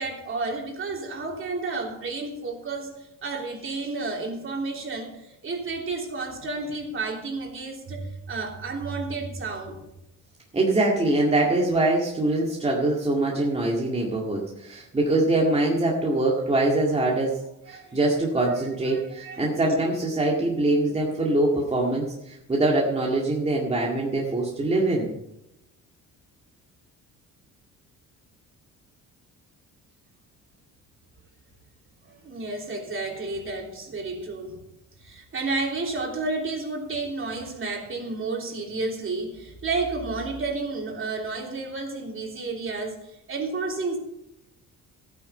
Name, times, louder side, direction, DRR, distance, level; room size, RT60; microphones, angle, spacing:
voice 1, 0.0-9.8 17.7-17.9 18.5-18.6 19.1-19.5 32.0-34.6 35.0-43.0 43.3-44.0, right 3 dB, 40° right, 0 dB, 3.3 m, -31 dB
voice 2, 10.5-17.4 17.7-25.1, right 2 dB, 20° right, -3 dB, 2.0 m, -23 dB
15.0 x 9.5 x 5.5 m, 0.87 s
cardioid pair, 140°, 33 cm